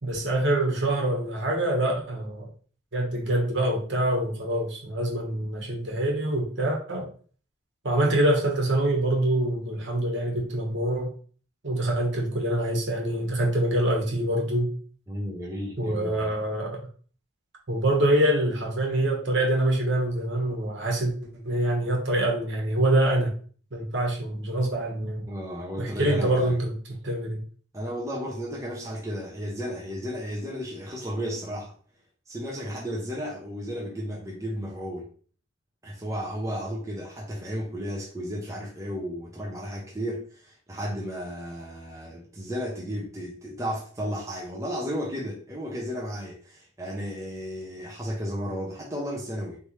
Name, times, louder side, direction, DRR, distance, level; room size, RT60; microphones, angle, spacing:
voice 1, 0.0-2.5 2.9-7.1 7.8-11.1 11.6-14.7 15.8-16.8 17.7-21.1 21.4-23.3 23.7-25.2 25.8-26.7 27.0-27.4, right 1 dB, 60° right, -1 dB, 1.3 m, -25 dB
voice 2, 15.1-16.3 25.3-26.5 27.7-31.8 32.3-35.1 35.8-49.6, equal, 15° right, -3 dB, 0.7 m, -33 dB
4.2 x 3.3 x 3.2 m, 0.43 s
head